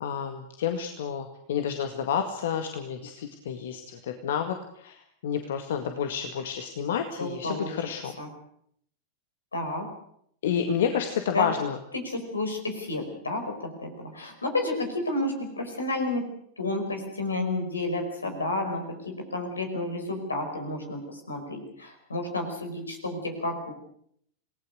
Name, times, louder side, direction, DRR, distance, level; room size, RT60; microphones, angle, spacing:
voice 1, 0.0-8.1 10.4-11.8, left 8 dB, 70° left, 6 dB, 1.9 m, -30 dB
voice 2, 7.2-7.7 8.2-8.3 9.5-9.9 11.3-11.5 11.9-16.3 16.6-23.7, left 2 dB, 90° left, 5 dB, 5.0 m, -31 dB
27.5 x 18.5 x 6.5 m, 0.68 s
hypercardioid pair, 90°, 0 cm